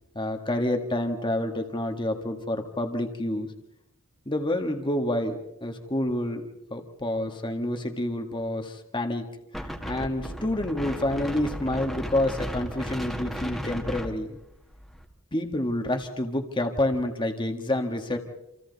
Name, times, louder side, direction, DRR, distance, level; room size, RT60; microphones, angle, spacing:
voice 1, 0.2-3.5 4.3-6.4 6.7-9.3 9.6-14.4 15.3-18.2, left 1 dB, 25° left, 4 dB, 1.7 m, -28 dB
Wind, 9.5-15.0, equal, ahead, 1.9 m, -35 dB
28.0 x 27.5 x 4.1 m, 0.88 s
head